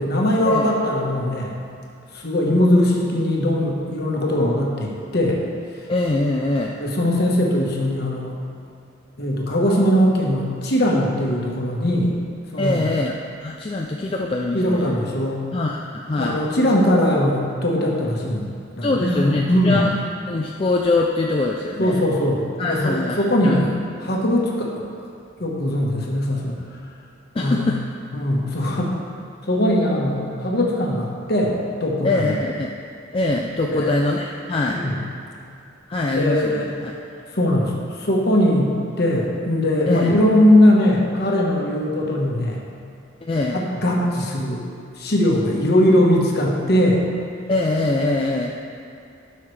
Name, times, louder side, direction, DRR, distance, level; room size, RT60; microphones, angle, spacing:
voice 1, 0.0-1.6 2.1-5.4 5.7-5.8 6.8-8.3 9.2-12.1 12.5-12.8 14.5-15.4 16.2-19.8 21.8-23.7 24.0-24.9 25.4-26.6 27.4-27.6 28.1-28.9 29.4-32.4 33.6-33.9 34.7-35.0 36.1-36.7 37.3-42.6 43.5-44.6 45.0-47.0, left 1 dB, 50° left, -2 dB, 1.2 m, -20 dB
voice 2, 5.9-6.8 12.6-13.2 13.4-14.9 15.5-16.4 18.8-20.0 20.3-22.0 22.6-23.2 23.4-23.6 27.4-27.8 32.0-32.7 33.1-34.8 35.9-36.9 39.9-40.1 43.2-43.6 47.5-48.5, left 2 dB, 25° left, -1 dB, 0.3 m, -23 dB
12.5 x 5.6 x 3.2 m, 2.5 s
head